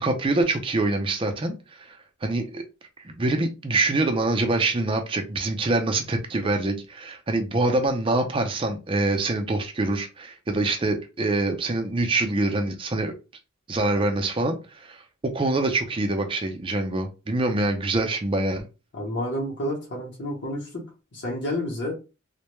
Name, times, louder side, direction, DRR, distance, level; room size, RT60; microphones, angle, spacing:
voice 1, 0.0-2.6 3.0-13.1 13.7-15.0 15.3-18.7, right 2 dB, 25° right, 0.4 m, -25 dB
voice 2, 18.9-20.8 21.1-22.0, left 1 dB, 55° left, 0.8 m, -30 dB
2.1 x 2.1 x 3.0 m
head